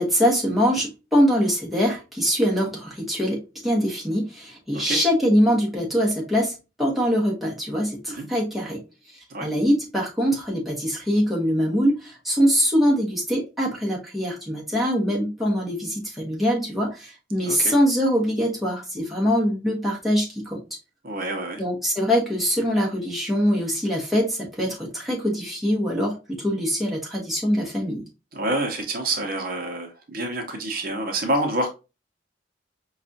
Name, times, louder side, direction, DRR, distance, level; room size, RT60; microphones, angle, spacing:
voice 1, 0.0-8.8 9.4-20.6 21.6-28.1, equal, ahead, -4 dB, 1.0 m, -23 dB
voice 2, 21.0-21.6 28.3-31.7, right 1 dB, 50° right, 3 dB, 0.7 m, -27 dB
5.2 x 2.3 x 2.6 m, 0.29 s
head